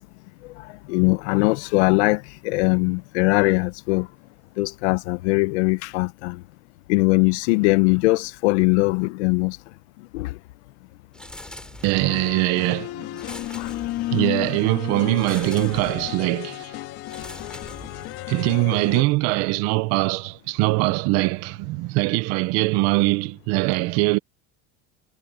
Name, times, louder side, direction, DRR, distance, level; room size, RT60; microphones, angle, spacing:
voice 1, 0.9-4.1 4.6-6.4 6.9-9.6 10.1-10.3 13.6-13.7, left 24 dB, 80° left, 1.0 m, -21 dB
sound 1, 11.1-12.3 13.1-14.4 15.2-16.2 17.0-18.4, left 1 dB, 5° left, 3.1 m, -42 dB
voice 2, 11.8-13.1 14.1-16.7 18.3-24.2, right 22 dB, 50° right, 0.8 m, -22 dB
sound 2, 11.9-19.0, left 16 dB, 45° left, 2.6 m, -33 dB
cardioid pair, 165°, 33 cm